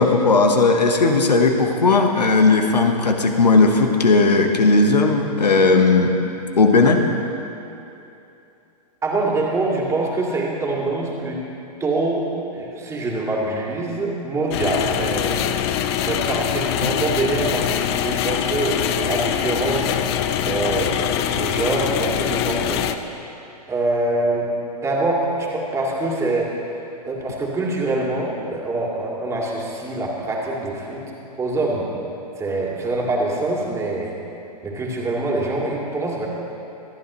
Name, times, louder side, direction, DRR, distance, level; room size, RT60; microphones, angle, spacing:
voice 1, 0.0-6.1 6.6-7.0, left 3 dB, 80° left, 3 dB, 1.3 m, -16 dB
voice 2, 9.0-11.5 11.8-15.5 16.0-23.0 23.7-24.5 24.8-26.6 27.0-31.0 31.4-31.9 32.4-34.1 34.6-36.3, right 2 dB, 15° right, -3 dB, 2.4 m, -24 dB
sound 1, 14.5-23.0, left 10 dB, 40° left, 0.7 m, -23 dB
26.0 x 10.5 x 3.2 m, 2.8 s
figure-of-eight pair, 110°, 21 cm